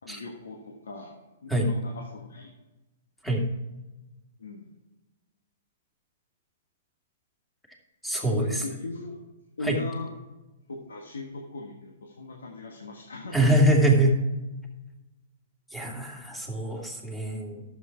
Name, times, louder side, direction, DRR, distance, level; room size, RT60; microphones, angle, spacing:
voice 1, 0.0-1.2 1.4-2.5 4.4-4.7 8.3-9.2 9.6-10.1 10.7-13.7, left 3 dB, 90° left, 1 dB, 1.5 m, -38 dB
voice 2, 8.0-8.6 9.6-9.8 13.3-14.2 15.7-17.6, right 1 dB, 5° left, -1 dB, 2.5 m, -24 dB
12.0 x 7.5 x 4.6 m, 1.1 s
hypercardioid pair, 135°, 0 cm